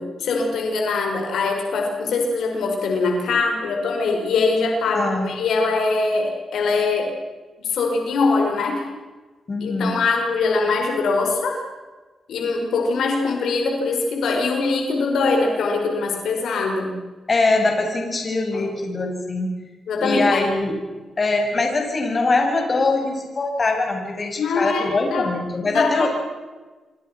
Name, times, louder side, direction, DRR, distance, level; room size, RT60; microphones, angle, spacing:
voice 1, 0.0-7.1 7.6-8.8 9.6-11.6 12.3-16.9 18.5-18.6 19.9-20.5 24.4-25.3 25.7-26.1, left 3 dB, 90° left, 2 dB, 5.2 m, -22 dB
voice 2, 4.9-5.3 9.5-10.0 17.3-19.5 20.0-20.8 21.2-26.1, left 3 dB, 35° left, 2 dB, 6.8 m, -22 dB
27.5 x 25.0 x 6.1 m, 1.3 s
cardioid pair, 100°, 0 cm